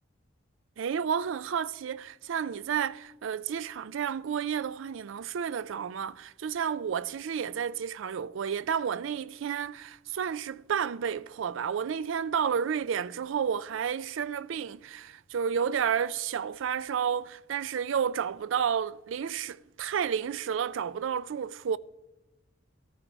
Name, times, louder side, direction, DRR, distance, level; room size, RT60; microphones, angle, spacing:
voice 1, 0.8-21.8, right 7 dB, 70° right, 0.4 m, -31 dB
14.0 x 13.5 x 4.5 m
head